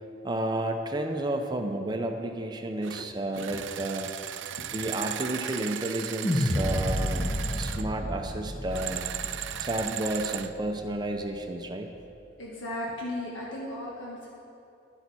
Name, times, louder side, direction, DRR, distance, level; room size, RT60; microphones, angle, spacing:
voice 1, 0.2-4.1 4.7-9.1 9.6-11.9, right 1 dB, 25° right, 4 dB, 0.6 m, -31 dB
sound 1, 2.8-3.0 3.3-7.9 8.7-10.5, right 11 dB, 80° right, 0.4 m, -36 dB
voice 2, 3.0-3.6 4.5-5.0 12.4-14.3, left 1 dB, 85° left, -4 dB, 1.4 m, -37 dB
sound 2, 6.2-10.6, left 1 dB, 25° left, 0.8 m, -30 dB
11.5 x 10.5 x 4.2 m, 2.8 s
head